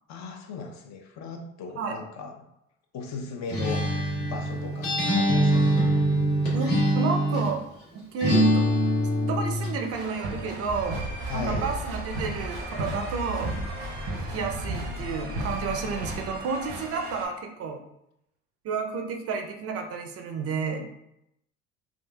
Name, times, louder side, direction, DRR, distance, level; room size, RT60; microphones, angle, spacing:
voice 1, 0.1-2.3 2.9-3.9 4.2-5.7 11.2-11.7, left 4 dB, 50° left, 3 dB, 0.6 m, -37 dB
Acoustic guitar, 3.5-7.6 8.2-9.8, equal, 65° left, 1.2 m, -23 dB
voice 2, 6.5-7.6 7.9-8.9 9.2-11.0 11.3-13.5 14.1-17.8 18.6-20.9, right 5 dB, 40° right, 4 dB, 0.5 m, -31 dB
sound 1, 9.9-17.3, right 1 dB, 75° right, 0.7 m, -36 dB
sound 2, 10.6-16.9, right 1 dB, 10° left, 0.7 m, -37 dB
3.5 x 2.4 x 2.2 m, 0.79 s
hypercardioid pair, 55°, 35 cm